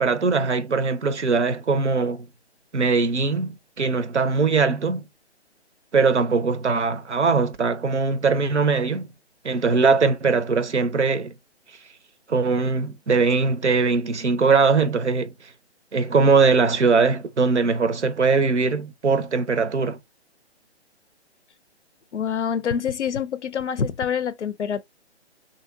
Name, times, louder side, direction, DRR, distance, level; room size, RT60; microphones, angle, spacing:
voice 1, 0.0-2.3 2.7-5.0 5.9-9.1 9.4-11.3 12.3-15.3 15.9-20.0, right 4 dB, 90° right, 0.7 m, -21 dB
voice 2, 22.1-24.8, left 7 dB, 85° left, 0.5 m, -26 dB
2.8 x 2.8 x 2.7 m
figure-of-eight pair, 140°, 34 cm